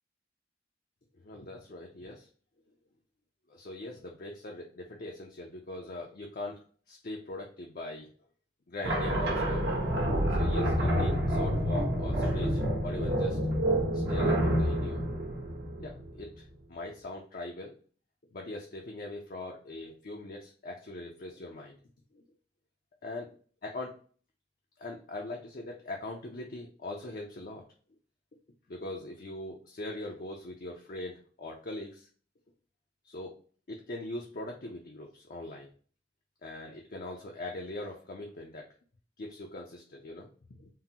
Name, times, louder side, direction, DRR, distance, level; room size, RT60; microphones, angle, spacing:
voice 1, 1.2-2.3 3.5-6.6 6.9-8.1 8.7-9.6 10.3-13.4 13.9-15.0 15.8-17.7 18.3-21.8 22.1-22.2 23.0-23.3 23.6-23.9 24.8-27.6 28.7-32.1 33.0-33.3 33.7-35.7 36.4-38.7 39.2-40.7, left 2 dB, 55° left, 0 dB, 0.5 m, -41 dB
sound 1, 8.8-16.2, equal, 65° right, 0.9 m, -28 dB
3.7 x 2.1 x 2.8 m, 0.42 s
head